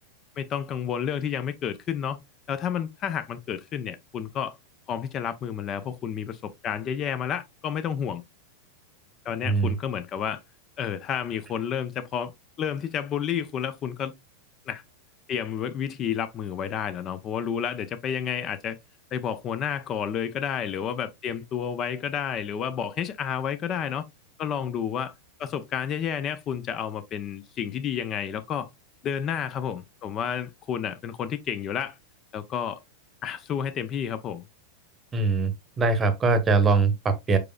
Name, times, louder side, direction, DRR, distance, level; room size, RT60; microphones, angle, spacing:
voice 1, 0.4-2.2 2.5-4.6 4.9-8.2 9.2-10.4 10.8-12.3 12.6-14.1 14.7-14.8 15.3-18.8 19.1-24.0 24.4-25.1 25.4-28.7 29.0-32.0 32.3-32.8 33.2-34.4, left 8 dB, 30° left, 0.5 m, -30 dB
voice 2, 35.1-37.4, right 4 dB, 20° right, 0.9 m, -22 dB
4.9 x 4.7 x 2.3 m
figure-of-eight pair, 90°, 0 cm